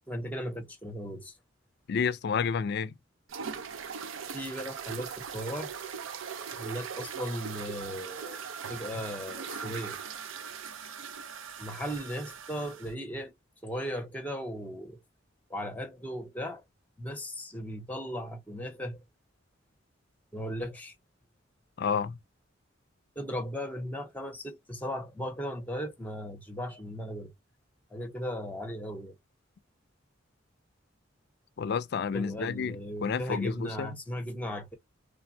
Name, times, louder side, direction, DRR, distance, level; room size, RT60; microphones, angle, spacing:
voice 1, 0.1-1.4 4.3-5.7 6.6-8.4 8.7-10.0 11.6-13.3 13.6-15.0 15.5-16.6 17.0-19.0 20.3-20.9 23.2-27.3 27.9-29.2 32.1-34.8, equal, 10° left, 0.7 m, -37 dB
voice 2, 1.9-2.9 21.8-22.2 31.6-33.9, left 6 dB, 55° left, 0.4 m, -30 dB
sound 1, 3.3-12.9, right 6 dB, 80° right, 0.5 m, -40 dB
3.3 x 2.1 x 2.6 m
head